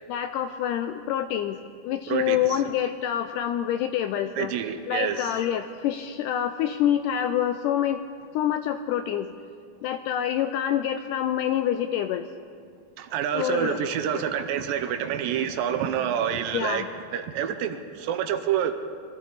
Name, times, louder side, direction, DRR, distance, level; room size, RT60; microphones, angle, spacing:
voice 1, 0.1-4.5 4.9-8.0 8.3-9.3 9.8-12.3 13.3-14.3 16.5-16.9, left 10 dB, 85° left, 8 dB, 1.9 m, -27 dB
voice 2, 2.1-2.4 4.4-5.4 13.0-16.8 17.1-18.7, right 9 dB, 80° right, 8 dB, 2.4 m, -27 dB
24.5 x 14.5 x 4.0 m, 2.1 s
omnidirectional pair, 4.1 m